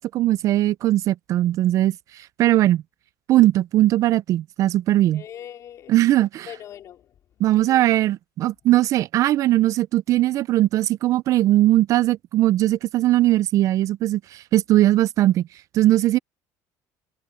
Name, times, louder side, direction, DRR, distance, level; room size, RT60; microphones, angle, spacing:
voice 1, 0.0-2.8 3.3-5.2 5.9-6.5 7.4-15.5 15.7-16.2, right 14 dB, 45° right, 0.3 m, -19 dB
voice 2, 5.1-6.0 6.5-7.1 7.5-8.0, left 10 dB, 45° left, 3.9 m, -41 dB
cardioid pair, 145°, 8 cm